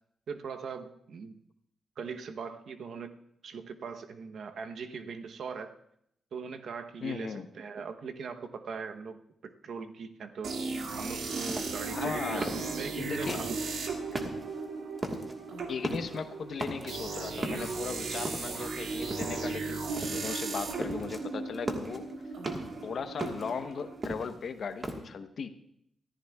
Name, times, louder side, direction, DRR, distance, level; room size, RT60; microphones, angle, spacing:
voice 1, 0.3-1.4 2.0-3.2 3.4-5.8 6.3-10.6 11.0-13.6, right 5 dB, 60° right, 7 dB, 0.9 m, -40 dB
voice 2, 7.0-7.5 11.9-12.6 12.9-13.4 15.7-22.1 22.8-25.5, left 5 dB, 55° left, 8 dB, 0.9 m, -37 dB
sound 1, 10.4-24.2, right 4 dB, 85° right, 2.0 m, -36 dB
sound 2, 11.5-13.8 14.1-14.7 15.0-15.4 15.7-16.2 16.5-17.1 17.4-18.7 19.1-19.6 20.0-20.4 20.6-21.2 21.5-22.8 23.2-25.0, right 1 dB, 20° right, 1.4 m, -38 dB
25.0 x 14.0 x 2.3 m, 0.74 s
wide cardioid pair, 175°, 0 cm